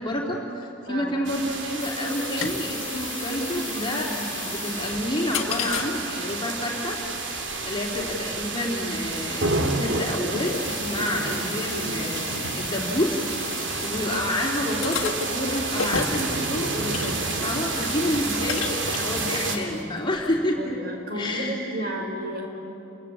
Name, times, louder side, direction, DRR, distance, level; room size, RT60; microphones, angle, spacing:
voice 1, 0.0-7.0 7.6-12.3 12.5-13.2 13.8-20.8 21.1-21.9, left 1 dB, 25° left, -1 dB, 3.1 m, -29 dB
voice 2, 0.9-1.2 20.6-22.5, right 1 dB, 50° right, 1 dB, 4.6 m, -32 dB
sound 1, 1.2-19.6, right 3 dB, 65° right, 2.9 m, -30 dB
sound 2, 1.8-20.4, left 6 dB, 85° left, 1.6 m, -36 dB
29.5 x 23.5 x 8.4 m, 2.9 s
head